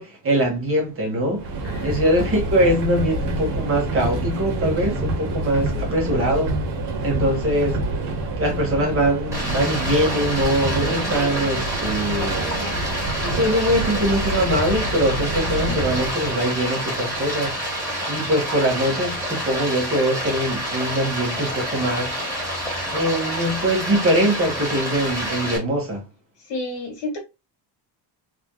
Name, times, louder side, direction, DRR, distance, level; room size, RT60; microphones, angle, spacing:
voice 1, 0.0-1.5 1.8-6.5 7.0-7.8 8.4-12.5 13.3-17.6 18.1-22.2 22.9-26.0, equal, 30° right, 1.6 m, -22 dB
Subway metro underground, 1.4-16.2, right 2 dB, 70° right, 1.5 m, -27 dB
voice 2, 1.6-2.0 5.7-6.0 15.6-15.8 26.5-27.2, left 2 dB, 75° left, 2.2 m, -31 dB
Stream, 9.3-25.6, equal, 5° right, 1.9 m, -28 dB
4.1 x 3.5 x 2.3 m
cardioid pair, 165°, 43 cm